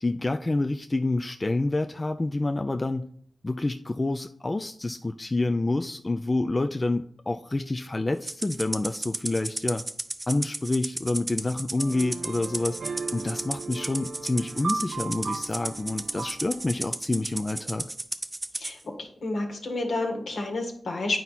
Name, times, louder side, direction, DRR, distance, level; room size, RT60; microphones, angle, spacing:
voice 1, 0.0-3.0 3.4-9.8 10.3-12.8 13.1-17.9, left 2 dB, 30° left, 7 dB, 0.4 m, -28 dB
Rattle (instrument), 8.3-18.7, right 2 dB, 25° right, 0.6 m, -34 dB
sound 1, 11.8-16.8, right 4 dB, 70° right, 0.4 m, -36 dB
voice 2, 18.6-21.2, left 2 dB, 70° left, 3 dB, 1.6 m, -30 dB
9.1 x 4.5 x 4.1 m, 0.62 s
cardioid pair, 50°, 0 cm